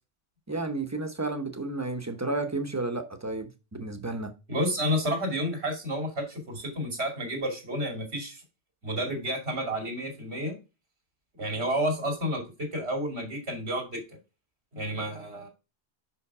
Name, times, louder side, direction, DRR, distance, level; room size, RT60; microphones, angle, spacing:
voice 1, 0.5-4.3, right 2 dB, 15° right, 0.9 m, -32 dB
voice 2, 4.5-8.4 8.8-10.6 11.4-14.0 14.7-15.5, equal, 90° right, 2.8 m, -30 dB
5.7 x 5.7 x 4.7 m
omnidirectional pair, 1.1 m